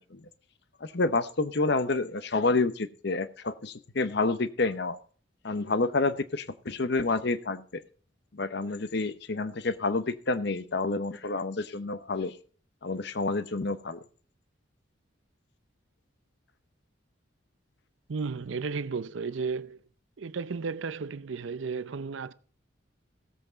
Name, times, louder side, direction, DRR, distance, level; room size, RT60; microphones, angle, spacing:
voice 1, 0.8-5.0 5.4-7.8 8.3-12.3 12.8-14.0, left 3 dB, 55° left, 0.9 m, -29 dB
voice 2, 18.1-19.8 20.2-22.3, right 5 dB, 75° right, 0.6 m, -33 dB
16.5 x 7.9 x 4.0 m
head